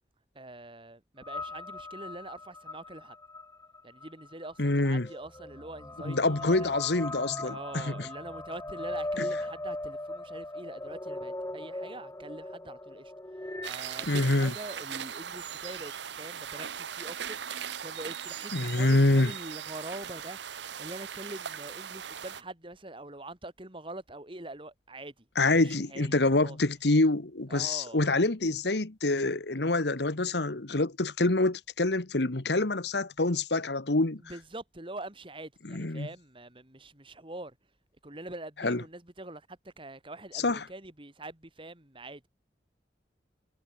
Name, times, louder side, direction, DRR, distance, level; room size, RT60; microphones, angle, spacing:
voice 1, 0.3-3.2 3.8-6.7 7.4-13.1 13.6-17.4 17.8-26.6 27.5-28.1 34.2-37.6 38.0-42.3, right 2 dB, 30° right, 2.8 m, -44 dB
sound 1, 1.2-13.7, left 1 dB, 15° left, 1.4 m, -39 dB
voice 2, 4.6-5.1 6.0-8.1 9.2-9.3 14.1-14.5 18.5-19.3 25.4-34.2 35.7-36.1 38.6-38.8 40.3-40.7, left 2 dB, 70° left, 1.5 m, -26 dB
sound 2, 13.6-22.4, right 8 dB, 80° right, 0.9 m, -39 dB
head